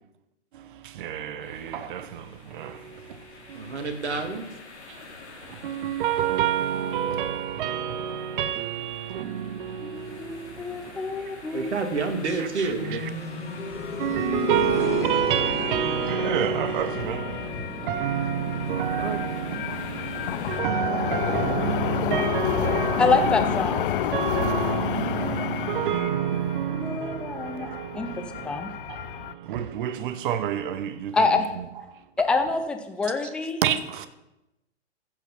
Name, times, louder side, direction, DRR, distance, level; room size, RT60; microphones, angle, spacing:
voice 1, 0.5-4.0 4.9-5.0 5.4-11.7 12.4-13.1 14.0-32.0 33.6-34.1, right 9 dB, 45° right, 1.0 m, -29 dB
sound 1, 1.4-20.6, left 3 dB, 70° left, 2.8 m, -48 dB
voice 2, 3.5-4.5 11.5-13.0 19.0-19.2, right 4 dB, 70° right, 2.2 m, -29 dB
voice 3, 9.8-11.7 23.0-23.9 26.7-27.7 27.9-28.1 28.4-28.7 31.1-31.5 32.2-33.6, left 4 dB, 5° left, 0.4 m, -26 dB
sound 2, 12.8-23.5 24.9-25.0, left 2 dB, 85° left, 2.8 m, -36 dB
sound 3, 13.5-29.3, left 11 dB, 50° left, 0.6 m, -31 dB
15.0 x 5.8 x 5.7 m
figure-of-eight pair, 115°, 35 cm